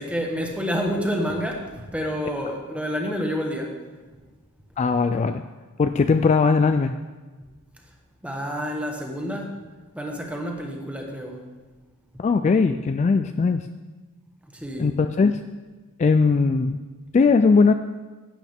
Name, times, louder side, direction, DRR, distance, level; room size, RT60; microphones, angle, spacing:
voice 1, 0.0-3.8 8.2-9.6 9.9-11.4 12.1-12.2 14.5-14.9, equal, 5° right, 1 dB, 1.3 m, -29 dB
voice 2, 4.8-5.4 5.8-6.9 12.2-13.6 14.8-15.3 16.0-16.8 17.1-17.7, left 4 dB, 30° left, 8 dB, 0.3 m, -19 dB
11.5 x 8.5 x 3.5 m, 1.3 s
head